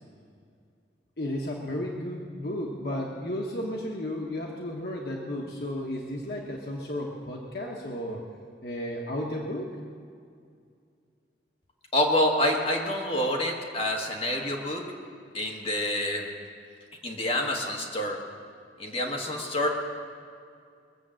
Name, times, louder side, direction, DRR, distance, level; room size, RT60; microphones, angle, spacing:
voice 1, 1.2-8.2 8.6-9.7, left 1 dB, 60° left, -1 dB, 1.2 m, -33 dB
voice 2, 11.9-14.9 15.3-16.3 17.0-18.2 18.8-19.7, left 1 dB, 30° left, 0 dB, 1.5 m, -27 dB
21.0 x 7.4 x 7.6 m, 2.3 s
head